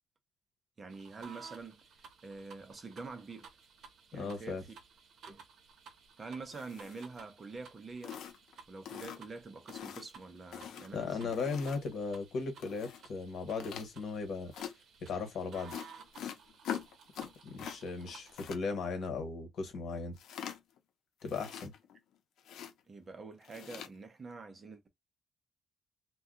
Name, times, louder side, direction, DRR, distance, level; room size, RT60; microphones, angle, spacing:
voice 1, 0.8-1.8 2.2-3.5 4.1-4.7 5.3-5.4 6.2-8.2 8.7-11.3 22.9-24.9, right 4 dB, 25° right, 0.6 m, -46 dB
sound 1, 0.9-18.5, right 6 dB, 55° right, 0.8 m, -56 dB
voice 2, 4.1-4.6 10.9-14.5 15.0-15.7 17.2-20.2 21.2-21.7, left 4 dB, 60° left, 1.1 m, -37 dB
sound 2, 6.5-7.2 7.6-7.7 8.0-8.5 8.9-9.4 9.7-10.1 10.5-12.0 12.6-13.0 13.6-13.9 14.5-14.7 15.7-17.8 18.0-18.6 20.2-20.8 21.2-22.0 22.4-22.7 23.4-23.9, left 9 dB, 80° left, 0.6 m, -43 dB
2.7 x 2.2 x 3.6 m
cardioid pair, 170°, 0 cm